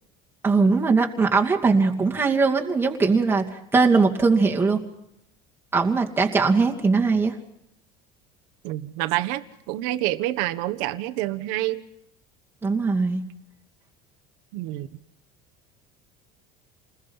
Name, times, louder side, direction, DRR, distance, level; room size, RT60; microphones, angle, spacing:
voice 1, 0.4-3.4 3.7-4.8 5.7-7.4 12.6-13.2, right 4 dB, 10° right, 2.5 m, -20 dB
voice 2, 8.6-11.8 14.5-14.9, right 16 dB, 80° right, 1.4 m, -27 dB
29.5 x 20.5 x 5.6 m
cardioid pair, 145°, 19 cm